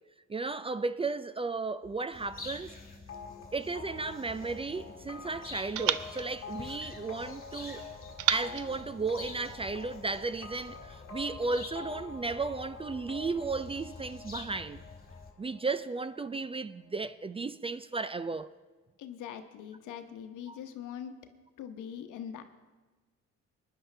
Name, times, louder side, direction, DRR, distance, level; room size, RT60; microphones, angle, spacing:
voice 1, 0.3-2.7 3.5-7.8 8.3-14.8 15.4-18.5 20.5-20.6, right 3 dB, 20° right, 0.3 m, -34 dB
sound 1, 2.1-15.3, left 3 dB, 30° left, 2.0 m, -48 dB
sound 2, 3.1-16.6, left 5 dB, 45° left, 1.4 m, -47 dB
sound 3, 4.0-5.2 5.8-7.4 8.2-9.8, right 13 dB, 80° right, 0.5 m, -36 dB
voice 2, 19.0-21.1 21.6-22.4, left 9 dB, 85° left, 1.0 m, -42 dB
20.5 x 10.5 x 3.3 m
cardioid pair, 90°, 30 cm